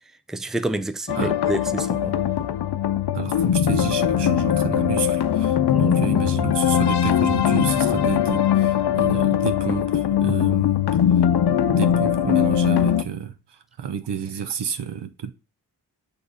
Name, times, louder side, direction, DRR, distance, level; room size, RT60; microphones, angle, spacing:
voice 1, 0.3-2.2 5.7-6.0, right 1 dB, ahead, 0.5 m, -28 dB
sound 1, 1.1-13.0, left 10 dB, 75° left, 0.6 m, -21 dB
voice 2, 3.1-10.9 11.1-11.3 11.6-15.3, right 7 dB, 90° right, 1.0 m, -30 dB
8.3 x 3.6 x 4.1 m
wide cardioid pair, 130°, 40 cm